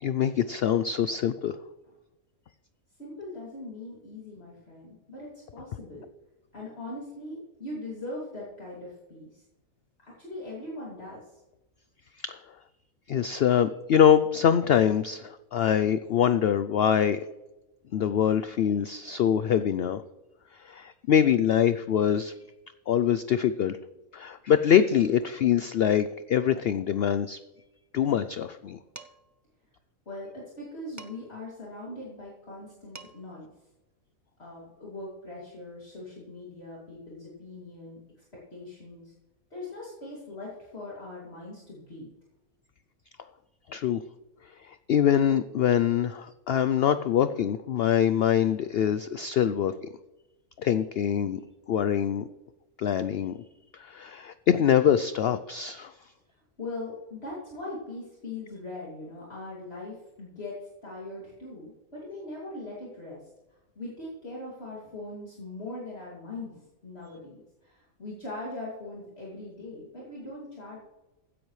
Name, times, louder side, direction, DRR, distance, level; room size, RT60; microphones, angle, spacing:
voice 1, 0.0-1.6 12.2-12.4 13.1-17.2 17.9-20.0 20.5-22.3 22.9-23.8 24.1-27.4 27.9-28.8 43.7-44.0 44.6-49.9 50.6-51.4 51.7-52.3 52.8-53.4 53.7-55.9, left 9 dB, 75° left, 13 dB, 0.5 m, -24 dB
voice 2, 3.0-6.0 6.5-9.4 10.2-11.4 30.1-33.5 34.4-38.0 38.5-39.1 39.5-42.1 56.6-63.2 63.8-70.8, left 2 dB, 45° left, -6 dB, 2.9 m, -40 dB
Dishes pots and pans, 29.0-29.4 31.0-31.4 32.6-32.7 32.9-33.4, right 3 dB, 25° right, 0.3 m, -47 dB
16.0 x 10.0 x 3.2 m, 1.0 s
omnidirectional pair, 1.5 m